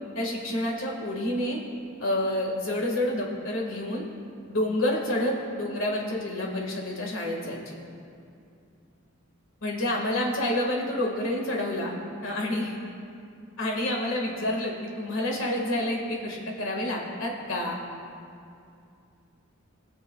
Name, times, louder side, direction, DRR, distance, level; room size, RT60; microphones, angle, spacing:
voice 1, 0.1-1.6 2.0-4.0 4.5-7.8 9.6-11.9 12.2-12.8 13.6-17.8, left 1 dB, 65° left, -1 dB, 1.8 m, -28 dB
21.5 x 7.7 x 2.3 m, 2.5 s
head